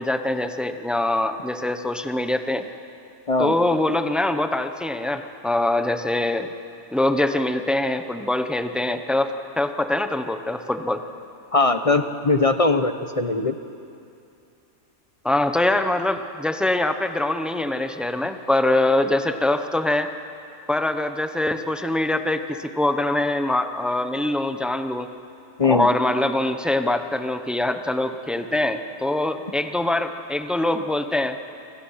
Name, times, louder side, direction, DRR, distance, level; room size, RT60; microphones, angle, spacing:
voice 1, 0.0-2.6 3.4-6.5 6.9-11.0 15.2-20.1 20.7-25.1 25.6-31.4, left 1 dB, ahead, 8 dB, 0.7 m, -23 dB
voice 2, 11.5-13.5 25.6-25.9, left 3 dB, 30° left, 8 dB, 0.8 m, -20 dB
29.5 x 25.5 x 5.8 m, 2.6 s
omnidirectional pair, 1.6 m